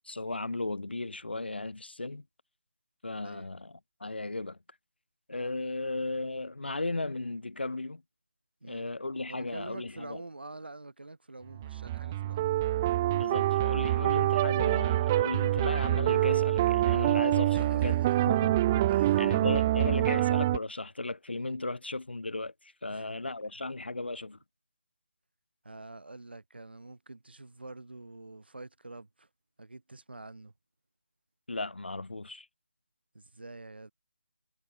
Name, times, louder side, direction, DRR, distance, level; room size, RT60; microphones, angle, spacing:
voice 1, 0.0-2.2 3.0-4.6 5.3-8.0 8.6-10.2 13.1-18.0 18.3-24.4 31.5-32.5, left 2 dB, 80° left, 0.9 m, -35 dB
voice 2, 8.6-8.9 9.3-12.6 17.5-18.4 18.9-19.4 22.9-23.2 25.6-29.3 29.6-30.5 33.1-33.9, right 2 dB, 75° right, 4.1 m, -46 dB
sound 1, 11.5-20.6, right 14 dB, 15° right, 0.3 m, -26 dB
figure-of-eight pair, 155°, 6 cm